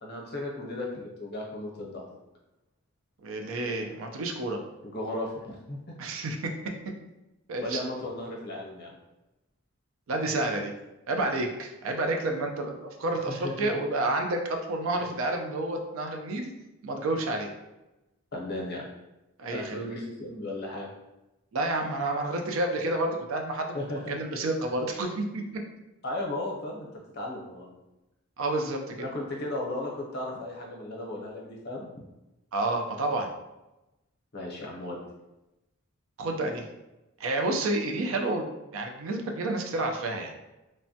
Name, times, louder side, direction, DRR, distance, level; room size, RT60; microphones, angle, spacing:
voice 1, 0.0-2.1 4.8-5.9 7.6-8.9 13.3-13.7 18.3-18.8 19.5-20.9 23.7-24.2 26.0-26.9 27.1-27.7 29.0-31.9 34.3-35.0, left 1 dB, 50° left, -2 dB, 0.7 m, -35 dB
voice 2, 3.2-4.6 6.0-6.5 7.5-7.8 10.1-10.7 11.1-16.5 16.8-17.5 19.4-19.8 21.5-23.7 24.1-25.6 28.4-29.1 32.5-33.3 36.2-36.6 37.2-38.5 38.7-40.3, right 2 dB, 65° right, 3 dB, 0.4 m, -29 dB
3.2 x 2.1 x 2.7 m, 0.99 s
head